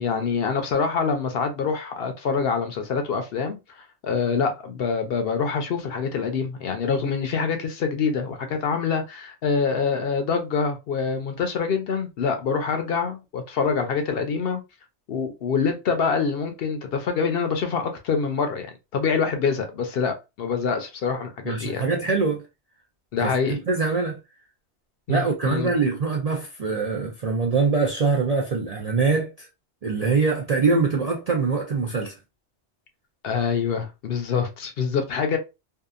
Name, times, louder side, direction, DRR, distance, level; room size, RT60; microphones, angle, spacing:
voice 1, 0.0-14.6 15.1-18.7 18.9-21.9 23.1-23.6 25.1-25.7 33.2-35.4, left 5 dB, 65° left, 0.7 m, -25 dB
voice 2, 21.5-22.4 23.2-24.2 25.1-29.5 29.8-32.1, right 4 dB, 55° right, 0.4 m, -23 dB
2.7 x 2.3 x 2.3 m
omnidirectional pair, 1.2 m